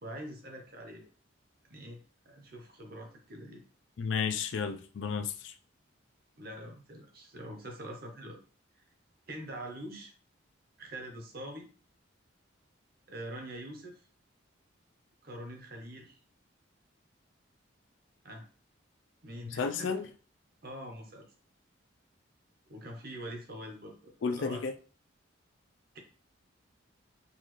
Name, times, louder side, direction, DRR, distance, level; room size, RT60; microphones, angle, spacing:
voice 1, 0.0-1.1 1.7-2.0 2.2-3.6 6.4-8.4 9.3-10.1 10.8-11.7 13.1-14.0 15.2-16.2 18.2-18.4 19.2-20.0 20.6-21.3 22.7-24.7, right 1 dB, 50° right, 0.9 m, -44 dB
voice 2, 4.0-5.5 19.5-20.1 24.2-24.7, left 5 dB, 65° left, 0.4 m, -32 dB
4.0 x 2.5 x 3.1 m
head